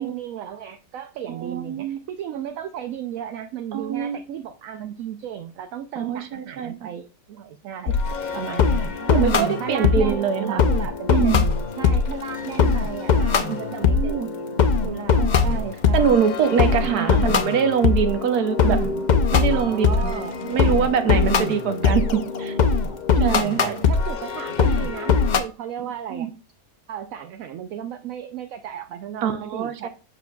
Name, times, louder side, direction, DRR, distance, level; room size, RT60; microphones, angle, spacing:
voice 1, 0.0-11.3 11.8-14.5 14.8-16.2 16.8-17.4 18.6-19.1 19.5-21.9 23.1-26.3 26.9-29.9, right 10 dB, 70° right, 0.9 m, -34 dB
voice 2, 1.3-2.0 3.7-4.2 6.0-6.9 7.9-8.0 9.1-10.6 11.1-11.4 13.5-14.3 15.2-15.6 15.9-18.8 19.3-22.5 23.2-23.8 25.8-26.3 29.2-29.9, right 7 dB, 90° right, 1.3 m, -24 dB
sound 1, 7.9-25.4, left 5 dB, 80° left, 0.4 m, -21 dB
7.4 x 5.9 x 2.3 m
omnidirectional pair, 1.6 m